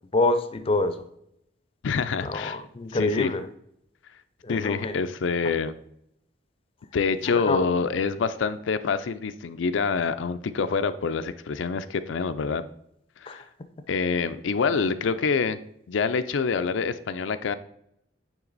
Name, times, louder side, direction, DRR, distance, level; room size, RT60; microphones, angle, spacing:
voice 1, 0.1-1.0 2.2-3.5 4.4-5.0 7.3-7.6 13.3-13.4, left 2 dB, 30° left, 10 dB, 0.5 m, -26 dB
voice 2, 1.8-2.6 2.9-3.3 4.5-5.7 6.9-12.6 13.2-13.4 13.9-15.6 15.9-17.5, left 5 dB, 85° left, 11 dB, 0.4 m, -26 dB
9.0 x 3.4 x 3.9 m, 0.74 s
head